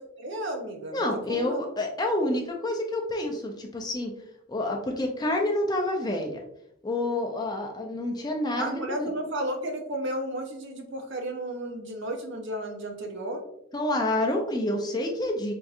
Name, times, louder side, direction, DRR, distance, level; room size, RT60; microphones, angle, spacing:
voice 1, 0.2-1.7 8.6-13.4, right 1 dB, 55° right, 3 dB, 0.6 m, -33 dB
voice 2, 0.9-4.1 4.5-6.4 6.8-9.1 13.7-15.5, left 1 dB, 20° left, 2 dB, 0.4 m, -28 dB
4.6 x 2.6 x 2.4 m, 0.75 s
head